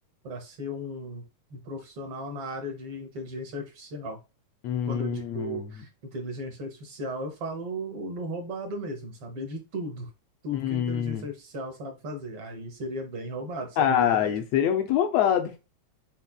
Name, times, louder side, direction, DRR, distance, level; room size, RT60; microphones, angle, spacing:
voice 1, 0.2-1.2 1.5-4.2 4.9-10.1 10.4-14.3, equal, 65° right, 1.5 m, -36 dB
voice 2, 4.6-5.7 10.5-11.2 13.8-15.6, left 9 dB, 80° left, 1.5 m, -25 dB
5.6 x 4.1 x 2.2 m
omnidirectional pair, 3.4 m